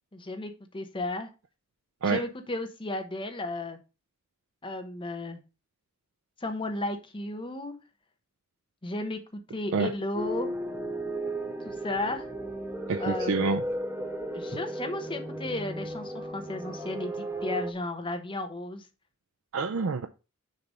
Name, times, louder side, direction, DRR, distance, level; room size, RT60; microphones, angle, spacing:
voice 1, 0.1-1.3 2.0-3.8 4.6-5.4 6.4-7.7 8.8-10.5 11.6-12.3 13.0-13.4 14.3-18.9, left 2 dB, 25° left, 1.0 m, -34 dB
sound 1, 10.1-17.7, right 1 dB, 10° right, 0.6 m, -35 dB
voice 2, 12.9-13.6 19.5-20.1, right 4 dB, 65° right, 0.5 m, -27 dB
6.6 x 3.4 x 5.4 m
head